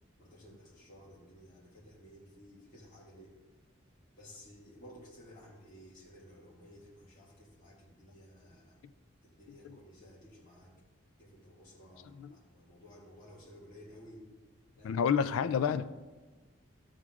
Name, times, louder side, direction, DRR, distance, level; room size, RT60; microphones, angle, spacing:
voice 1, 0.2-3.3 4.2-8.8 9.2-10.7 11.2-14.3 14.8-15.0, equal, 40° left, 1.8 m, -55 dB
voice 2, 14.8-15.8, left 7 dB, 90° left, 0.3 m, -29 dB
12.5 x 7.5 x 2.4 m
head